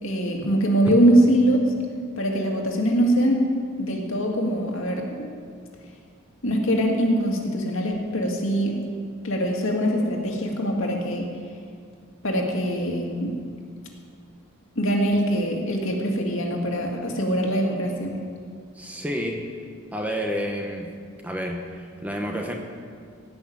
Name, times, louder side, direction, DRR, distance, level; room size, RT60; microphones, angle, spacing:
voice 1, 0.0-1.6 2.2-3.4 3.8-5.3 6.4-8.8 9.2-11.3 12.2-13.4 14.8-18.2, equal, 70° left, 0 dB, 2.0 m, -23 dB
voice 2, 18.7-19.4 19.9-20.9 21.2-22.6, equal, 5° right, 2 dB, 1.0 m, -29 dB
16.5 x 6.2 x 8.7 m, 2.2 s
head